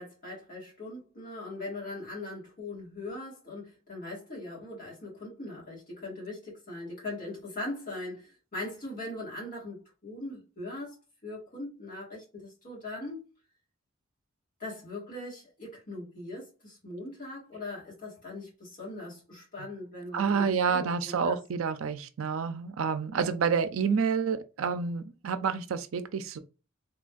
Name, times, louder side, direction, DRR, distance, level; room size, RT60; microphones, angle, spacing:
voice 1, 0.0-11.0 11.2-13.3 14.6-21.4, left 2 dB, 45° left, 1.8 m, -40 dB
voice 2, 20.1-26.4, right 6 dB, 80° right, 0.4 m, -29 dB
3.8 x 2.5 x 2.3 m
head